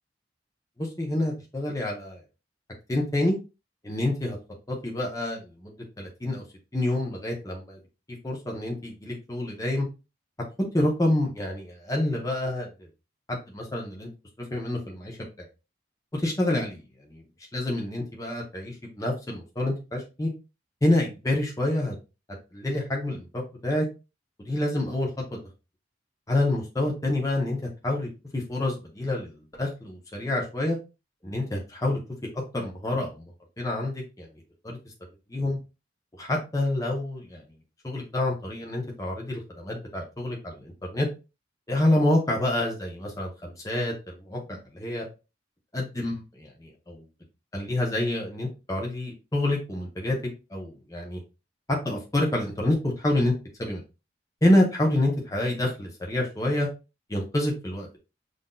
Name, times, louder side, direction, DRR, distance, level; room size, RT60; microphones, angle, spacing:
voice 1, 0.8-2.2 2.9-3.4 3.8-4.4 4.7-6.4 6.7-7.8 8.2-9.9 10.7-12.7 13.3-14.1 14.5-15.2 16.1-17.2 17.5-20.3 20.8-22.0 22.5-23.9 24.4-25.1 26.3-30.8 31.2-32.0 32.3-33.3 33.6-34.3 34.6-34.8 35.3-35.6 36.2-37.4 37.8-41.1 41.7-45.1 45.7-47.0 47.5-51.2 51.7-53.3 53.6-53.8 54.4-56.7 57.1-58.0, left 1 dB, 20° left, -1 dB, 0.8 m, -27 dB
5.7 x 2.6 x 2.2 m, 0.29 s
head